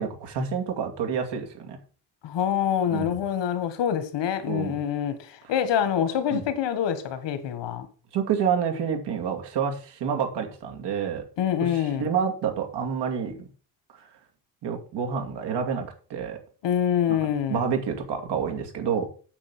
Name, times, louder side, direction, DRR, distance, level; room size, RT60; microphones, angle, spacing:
voice 1, 0.0-1.8 2.9-3.2 4.5-4.8 6.0-6.4 8.1-11.2 11.6-13.5 14.0-14.1 14.6-16.4 17.5-19.1, right 7 dB, 75° right, 2.6 m, -28 dB
voice 2, 2.2-7.9 11.4-12.1 16.6-17.7, left 9 dB, 85° left, 1.7 m, -26 dB
8.8 x 7.2 x 6.1 m
cardioid pair, 175°, 42 cm